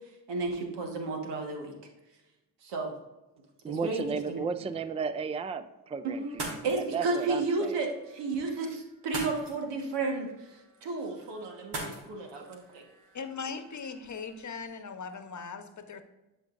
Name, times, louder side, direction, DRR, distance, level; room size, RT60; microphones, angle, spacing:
voice 1, 0.3-1.7 2.6-2.9 3.7-4.4 6.0-12.8, right 3 dB, 90° right, 2 dB, 1.6 m, -33 dB
voice 2, 3.6-7.8, right 5 dB, 15° right, 12 dB, 0.4 m, -34 dB
sound 1, 6.2-14.6, right 2 dB, 70° right, 2.2 m, -44 dB
voice 3, 13.1-16.0, left 5 dB, 45° left, 8 dB, 1.0 m, -39 dB
11.5 x 5.2 x 2.6 m, 1.0 s
cardioid pair, 70°, 41 cm